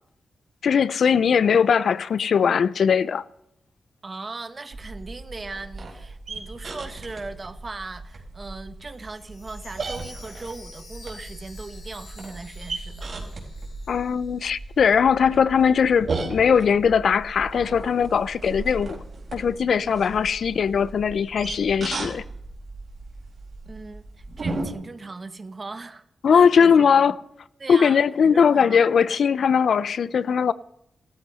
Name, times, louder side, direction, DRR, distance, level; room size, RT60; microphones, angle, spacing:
voice 1, 0.6-3.2 13.9-19.0 19.3-22.2 26.2-27.2 27.7-30.5, left 6 dB, 65° left, 0.5 m, -20 dB
voice 2, 4.0-13.1 23.7-27.2 27.6-28.8, right 3 dB, 30° right, 1.1 m, -38 dB
sound 1, 4.7-24.7, right 3 dB, 50° right, 4.1 m, -36 dB
Chime, 8.9-14.9 15.2-15.3 15.9-16.0, left 4 dB, 90° left, 5.6 m, -49 dB
16.0 x 13.5 x 5.5 m
wide cardioid pair, 145°, 0 cm